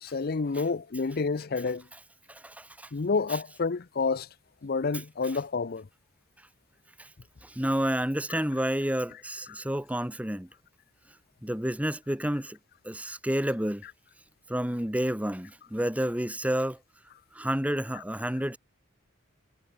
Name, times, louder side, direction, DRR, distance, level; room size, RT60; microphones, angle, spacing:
voice 1, 0.0-1.9 2.9-4.3 4.6-5.9 8.3-8.4 9.5-9.6, left 4 dB, 45° left, 0.6 m, -29 dB
voice 2, 2.3-2.9 3.3-3.4 4.9-5.0 7.0-7.1 7.4-10.5 11.4-12.6 12.8-13.8 14.5-16.8 17.3-18.6, equal, 5° right, 1.4 m, -30 dB
head